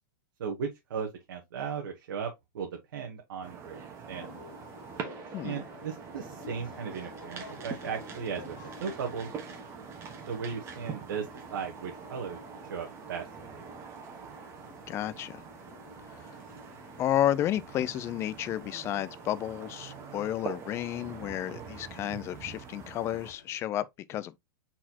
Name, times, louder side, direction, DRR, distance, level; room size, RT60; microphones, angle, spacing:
voice 1, 0.4-4.3 5.4-9.3 10.3-12.4 12.7-13.2, right 6 dB, 80° right, 1.2 m, -37 dB
sound 1, 3.4-23.3, right 6 dB, 25° right, 1.1 m, -44 dB
sound 2, 4.0-23.6, left 6 dB, 65° left, 1.9 m, -53 dB
voice 2, 5.3-5.6 14.9-15.4 17.0-24.4, left 12 dB, 25° left, 0.4 m, -32 dB
4.3 x 4.2 x 2.9 m
supercardioid pair, 150°, 11 cm